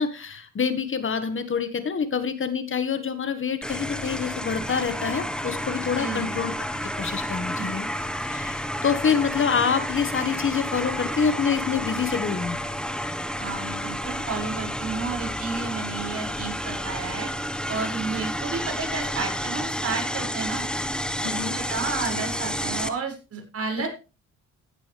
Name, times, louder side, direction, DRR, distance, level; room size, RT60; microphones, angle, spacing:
voice 1, 0.0-6.5 6.8-7.9 8.2-12.6 21.2-21.6, left 6 dB, 40° left, 11 dB, 1.8 m, -26 dB
sound 1, 3.6-22.9, equal, 5° left, 1.4 m, -30 dB
voice 2, 6.0-6.3 7.5-7.7 13.4-17.3 17.7-20.6 21.7-23.9, right 4 dB, 50° right, 2 dB, 6.3 m, -31 dB
15.5 x 10.0 x 3.5 m, 0.31 s
cardioid pair, 90°, 30 cm